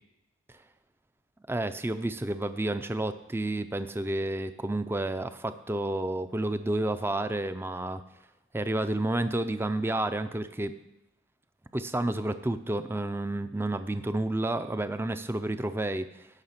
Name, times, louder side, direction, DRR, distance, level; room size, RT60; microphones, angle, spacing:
voice 1, 1.5-8.0 8.5-10.7 11.7-16.3, right 1 dB, 10° right, 10 dB, 0.4 m, -30 dB
16.5 x 5.7 x 5.8 m, 0.91 s
head